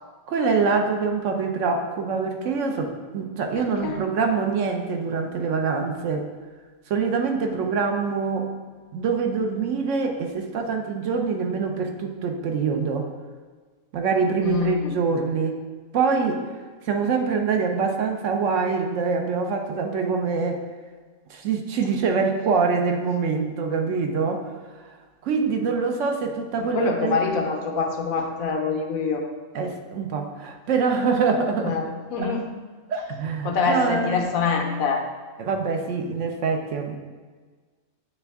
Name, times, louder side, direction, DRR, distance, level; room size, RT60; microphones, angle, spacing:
voice 1, 0.3-6.3 6.9-8.5 8.9-13.1 13.9-15.6 15.9-16.4 16.9-20.6 21.3-24.5 25.2-27.2 29.5-31.8 32.2-32.3 32.9-34.2 35.4-37.0, right 5 dB, 65° right, 4 dB, 0.9 m, -24 dB
voice 2, 3.6-4.0 14.4-15.0 26.6-29.2 31.6-32.4 33.4-35.0, left 5 dB, 85° left, 3 dB, 1.2 m, -25 dB
8.2 x 3.4 x 3.5 m, 1.4 s
omnidirectional pair, 1.4 m